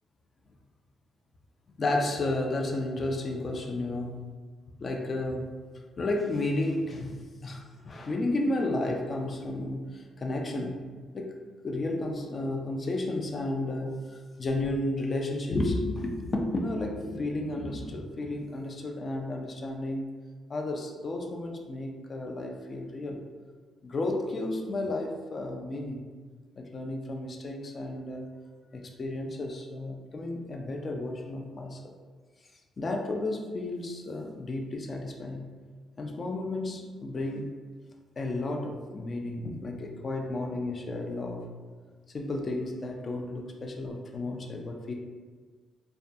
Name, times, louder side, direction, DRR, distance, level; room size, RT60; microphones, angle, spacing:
voice 1, 1.8-4.2 4.8-5.5 6.0-10.8 11.1-11.4 11.6-20.1 20.5-23.2 23.8-26.1 26.6-28.3 28.7-31.9 32.8-35.5 36.0-37.5 38.2-41.4 42.1-44.9, left 2 dB, 40° left, 2 dB, 0.4 m, -32 dB
2.3 x 2.2 x 2.6 m, 1.5 s
cardioid pair, 90°, 0 cm